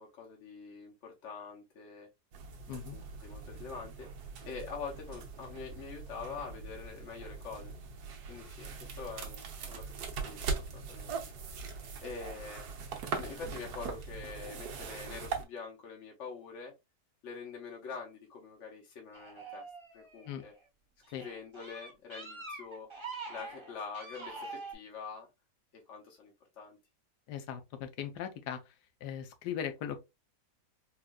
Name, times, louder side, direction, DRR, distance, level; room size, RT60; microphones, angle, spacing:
voice 1, 0.0-2.1 2.7-4.1 4.5-7.7 8.3-11.2 11.7-16.7 17.2-19.7 19.9-20.5 21.1-22.9 23.3-25.3 25.7-26.8, left 5 dB, 55° left, 0.9 m, -45 dB
sound 1, 2.3-15.4, right 5 dB, 70° right, 1.2 m, -41 dB
voice 2, 2.7-3.0 20.3-20.4 21.1-21.2 27.3-28.6 29.0-30.0, left 9 dB, 80° left, 1.3 m, -39 dB
sound 2, 19.1-20.5 21.0-24.7, right 3 dB, 25° right, 0.7 m, -45 dB
4.4 x 2.4 x 2.3 m
omnidirectional pair, 1.8 m